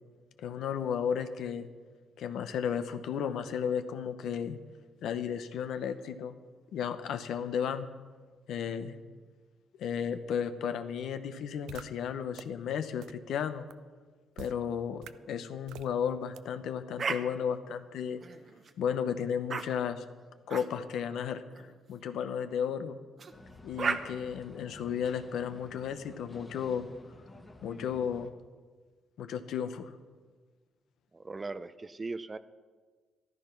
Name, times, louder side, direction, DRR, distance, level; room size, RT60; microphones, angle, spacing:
voice 1, 0.4-1.7 2.2-4.6 5.0-6.3 6.7-7.9 8.5-9.0 9.8-13.7 14.4-18.2 18.8-20.0 20.5-23.0 23.6-26.8 27.6-28.3 29.2-29.9, left 8 dB, 75° left, 10 dB, 0.9 m, -34 dB
sound 1, 11.7-11.8 12.3-12.4 13.0-13.1 13.7-13.8 14.4-14.5 15.0-15.1 15.7-15.9 16.4-16.5 17.0-17.1, right 11 dB, 90° right, 0.5 m, -45 dB
sound 2, 17.0-17.2 18.2-18.7 19.5-19.6 20.5-20.7 21.5-21.7 23.2-23.3 23.8-24.0, right 5 dB, 45° right, 0.9 m, -33 dB
sound 3, 23.3-28.3, left 2 dB, 20° left, 1.4 m, -51 dB
voice 2, 31.1-32.4, right 3 dB, 25° right, 14 dB, 0.6 m, -39 dB
14.0 x 11.5 x 5.9 m, 1.4 s
cardioid pair, 100°, 0 cm